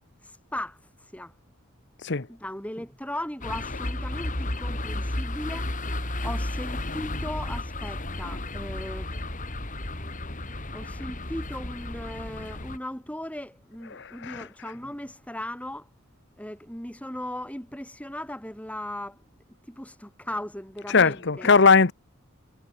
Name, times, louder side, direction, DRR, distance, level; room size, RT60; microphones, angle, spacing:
voice 1, 0.2-1.3 2.3-9.2 10.7-15.9 16.4-19.2 19.6-21.5, left 1 dB, 5° left, 3.5 m, -37 dB
sound 1, 3.4-12.8, left 1 dB, 40° left, 3.7 m, -33 dB
voice 2, 13.9-14.4 20.9-21.9, left 4 dB, 55° left, 1.0 m, -19 dB
head